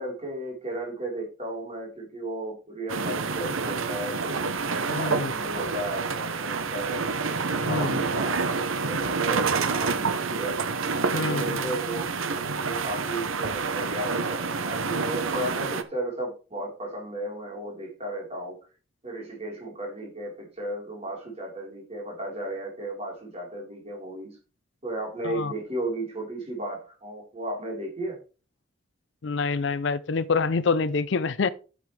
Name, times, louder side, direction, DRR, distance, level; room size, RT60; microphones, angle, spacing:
voice 1, 0.0-7.0 7.5-10.6 11.1-18.6 19.0-24.4 24.8-28.2, right 1 dB, 30° right, 4.2 m, -34 dB
sound 1, 2.9-15.8, right 4 dB, 80° right, 0.9 m, -28 dB
voice 2, 4.9-5.3 7.7-8.0 11.1-11.6 25.2-25.5 29.2-31.5, left 4 dB, 60° left, 0.5 m, -26 dB
11.5 x 7.7 x 3.3 m
head